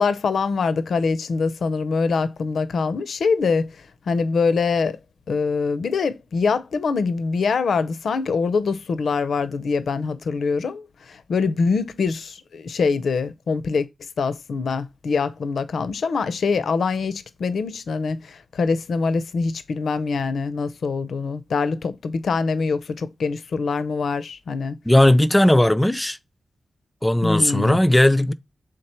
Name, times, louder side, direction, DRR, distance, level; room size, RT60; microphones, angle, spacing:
voice 1, 0.0-3.8 4.1-5.0 5.3-13.9 14.2-24.8 27.2-27.8, left 4 dB, 80° left, 0.5 m, -24 dB
voice 2, 24.9-26.2 27.0-28.3, left 1 dB, 10° left, 0.3 m, -17 dB
6.6 x 3.7 x 4.3 m
wide cardioid pair, 125°, 0 cm